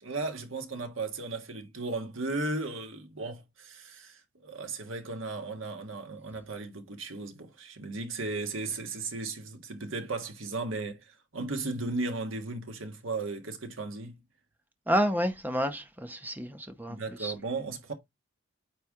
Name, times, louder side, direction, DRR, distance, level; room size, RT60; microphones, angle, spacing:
voice 1, 0.0-14.2 16.9-17.9, right 3 dB, 85° right, 1.5 m, -36 dB
voice 2, 14.9-17.3, equal, 10° right, 0.8 m, -30 dB
9.0 x 3.4 x 3.6 m
head